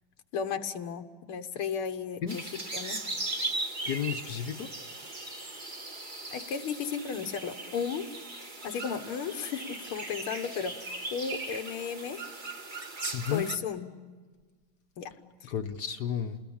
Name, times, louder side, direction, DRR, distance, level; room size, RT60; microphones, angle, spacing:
voice 1, 0.3-3.0 6.3-8.1 8.6-12.2 13.3-13.9 15.0-15.1 15.4-15.5, left 6 dB, 90° left, 7 dB, 2.1 m, -34 dB
sound 1, 2.3-13.6, right 2 dB, 25° right, 1.6 m, -38 dB
voice 2, 3.8-4.7 13.1-13.5 15.5-16.4, left 8 dB, 60° left, 7 dB, 1.4 m, -32 dB
29.5 x 20.0 x 8.7 m, 1.4 s
omnidirectional pair, 2.3 m